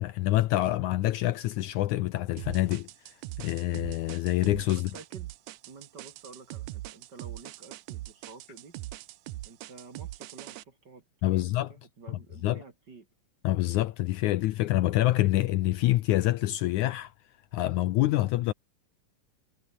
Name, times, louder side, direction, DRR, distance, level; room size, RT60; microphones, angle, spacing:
voice 1, 0.0-2.9 3.4-4.9 11.2-11.7 12.4-12.6 13.4-17.1 17.5-18.5, left 16 dB, 75° left, 1.9 m, -26 dB
sound 1, 2.4-10.6, right 16 dB, 75° right, 2.0 m, -41 dB
voice 2, 4.7-5.3 5.7-8.8 9.4-11.0 11.3-13.1, right 4 dB, 35° right, 2.5 m, -50 dB
omnidirectional pair, 3.9 m